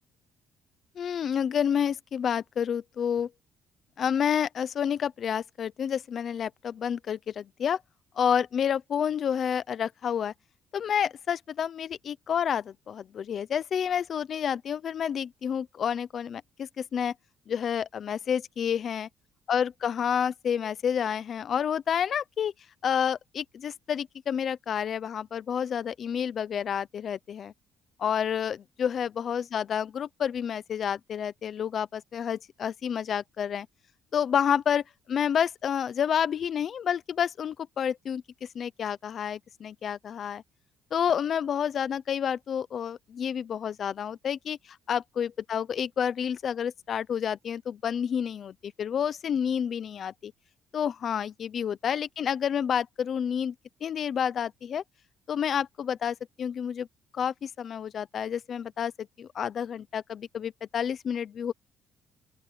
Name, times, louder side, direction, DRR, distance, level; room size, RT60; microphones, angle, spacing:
voice 1, 1.0-3.3 4.0-7.8 8.2-10.3 10.7-17.1 17.5-19.1 19.5-22.5 22.8-27.5 28.0-33.7 34.1-40.4 40.9-44.6 44.9-50.3 50.7-53.5 53.8-54.8 55.3-56.9 57.1-61.5, left 8 dB, 40° left, 0.7 m, -29 dB
open air
cardioid pair, 160°, 0 cm